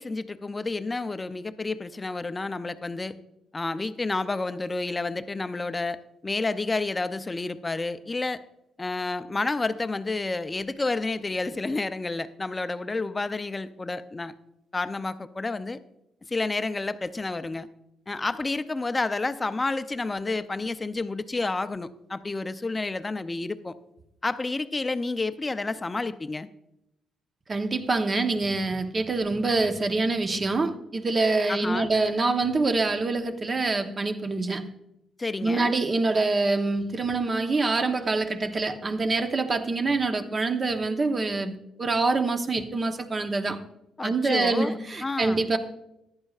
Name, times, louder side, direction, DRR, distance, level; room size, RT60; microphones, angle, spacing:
voice 1, 0.0-3.1 3.5-6.0 6.2-8.4 8.8-14.3 14.7-15.8 16.3-17.7 18.1-23.8 24.2-26.5 31.5-31.9 35.2-35.7 44.0-45.5, left 3 dB, 20° left, 0.5 m, -30 dB
voice 2, 27.5-34.7 35.4-41.5 41.8-43.6 44.0-45.6, right 3 dB, 35° right, 0.9 m, -25 dB
14.5 x 10.5 x 2.4 m
cardioid pair, 90°, 0 cm